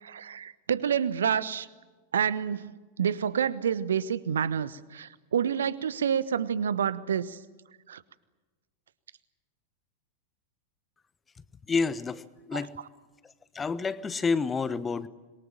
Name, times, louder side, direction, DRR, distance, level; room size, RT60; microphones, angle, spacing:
voice 1, 0.0-1.7 2.1-7.4 7.9-8.0 12.5-12.6, right 8 dB, 65° right, 17 dB, 1.1 m, -28 dB
voice 2, 11.7-12.8 13.2-15.1, left 4 dB, 15° left, 17 dB, 1.1 m, -29 dB
26.5 x 23.0 x 7.6 m, 1.3 s
figure-of-eight pair, 90°, 0 cm